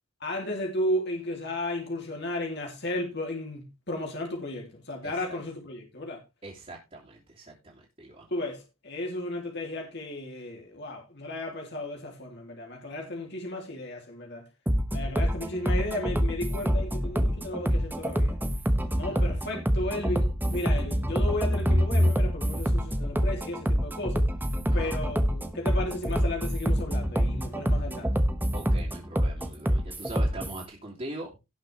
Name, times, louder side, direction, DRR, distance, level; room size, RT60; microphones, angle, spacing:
voice 1, 0.2-6.2 8.3-14.4 14.9-18.4 18.9-24.3 24.7-28.2, left 1 dB, 50° left, 3.0 m, -34 dB
voice 2, 5.0-5.4 6.4-8.3 19.1-19.2 24.7-24.9 28.5-31.3, right 2 dB, 30° right, 3.0 m, -41 dB
sound 1, 14.7-30.6, equal, 10° right, 1.1 m, -26 dB
17.5 x 5.9 x 3.4 m
head